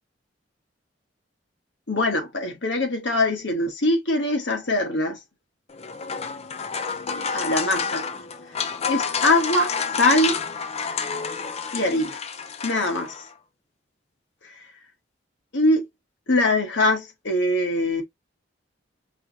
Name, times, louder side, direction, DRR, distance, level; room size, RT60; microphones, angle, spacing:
voice 1, 1.9-5.2 7.1-8.1 8.8-9.7 10.0-10.3 11.7-12.2 12.6-13.1 15.5-15.8 16.3-18.0, left 1 dB, 70° left, 1.4 m, -22 dB
sound 1, 5.7-13.3, left 6 dB, 35° left, 0.5 m, -29 dB
4.8 x 2.8 x 3.1 m
head